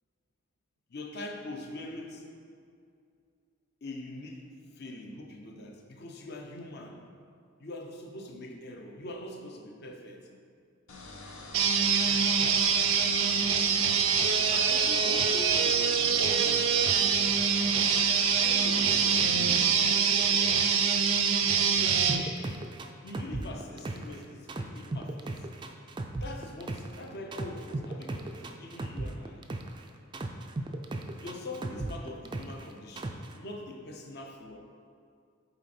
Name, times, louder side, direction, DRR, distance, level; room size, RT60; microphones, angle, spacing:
voice 1, 0.9-2.3 3.8-4.5 4.8-7.0 7.6-10.2 14.5-17.1 18.4-20.5 23.0-25.4 26.2-29.4 31.2-34.6, left 1 dB, 50° left, 2 dB, 0.7 m, -42 dB
sound 1, 10.9-19.2, left 2 dB, 85° left, 1.0 m, -44 dB
sound 2, 11.5-22.2, right 6 dB, 85° right, 0.5 m, -25 dB
sound 3, 22.1-24.2 24.5-27.0 27.3-29.8 30.1-32.6 33.0-33.3, right 2 dB, 20° right, 0.3 m, -35 dB
7.9 x 4.1 x 4.3 m, 2.3 s
head